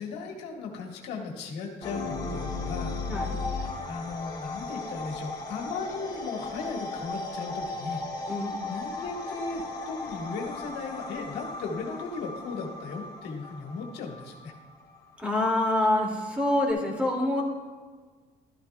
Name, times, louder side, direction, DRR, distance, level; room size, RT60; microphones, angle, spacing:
voice 1, 0.0-3.0 3.9-8.0 8.7-14.5, left 4 dB, 90° left, 2 dB, 1.5 m, -36 dB
sound 1, 1.8-15.2, left 3 dB, 25° left, 3.3 m, -36 dB
voice 2, 8.3-8.8 15.2-17.4, left 1 dB, 5° right, -1 dB, 2.3 m, -26 dB
12.5 x 12.0 x 2.3 m, 1.5 s
cardioid pair, 110°, 17 cm